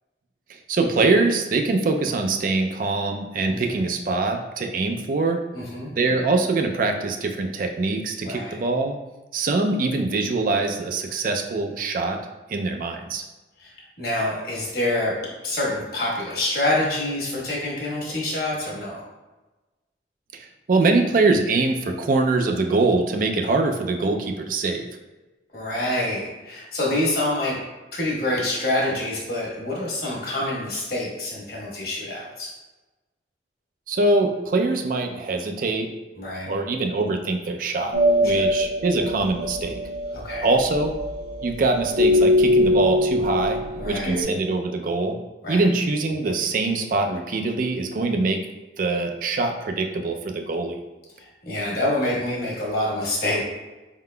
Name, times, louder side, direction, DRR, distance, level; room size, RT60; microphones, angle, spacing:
voice 1, 0.7-5.4 5.9-9.0 9.3-12.2 12.5-13.2 20.3-24.9 33.9-36.0 36.4-39.8 40.4-41.0 41.4-45.2 45.5-48.4 48.8-50.8, right 3 dB, 50° right, 4 dB, 0.4 m, -23 dB
voice 2, 3.5-3.8 5.5-5.9 8.2-8.6 13.6-13.7 14.0-15.1 15.4-19.0 25.5-27.6 27.9-32.5 36.2-36.5 38.2-38.5 40.1-40.5 43.7-44.2 45.4-45.6 51.4-53.4, left 1 dB, 55° left, -4 dB, 1.2 m, -26 dB
sound 1, 37.9-44.2, left 1 dB, 85° right, 1.2 m, -22 dB
4.7 x 3.6 x 2.2 m, 1.1 s
head